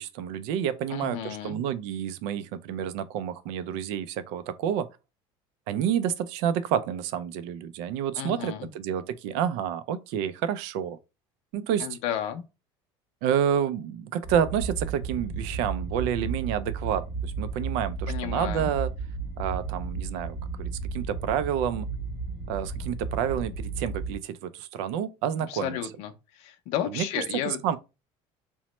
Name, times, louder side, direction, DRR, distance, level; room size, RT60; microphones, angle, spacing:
voice 1, 0.0-4.9 5.7-11.0 11.5-12.0 13.2-18.9 19.4-21.9 22.5-25.8 26.9-27.1 27.3-27.8, right 9 dB, 75° right, 0.4 m, -29 dB
voice 2, 0.9-1.6 8.2-8.7 11.8-12.4 18.1-18.7 25.5-27.6, left 10 dB, 65° left, 0.5 m, -33 dB
sound 1, 14.2-24.2, right 4 dB, 10° right, 0.7 m, -33 dB
3.0 x 2.1 x 3.0 m
cardioid pair, 160°, 12 cm